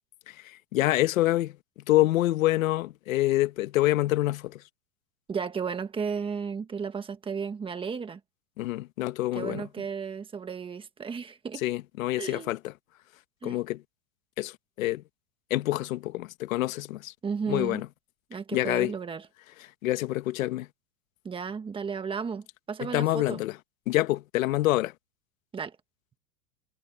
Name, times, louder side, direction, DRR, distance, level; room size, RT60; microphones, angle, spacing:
voice 1, 0.3-1.6 1.9-4.6 8.6-9.7 11.6-12.7 13.4-13.8 14.4-15.0 15.5-17.1 17.5-17.9 18.5-18.9 19.8-20.7 22.8-23.6 23.9-24.9, left 16 dB, 75° left, 1.5 m, -26 dB
voice 2, 5.3-8.2 9.3-11.6 12.2-12.5 13.4-13.6 17.2-17.8 18.3-19.3 21.2-23.4 25.5-25.8, right 6 dB, 15° right, 1.5 m, -34 dB
supercardioid pair, 155°, 40 cm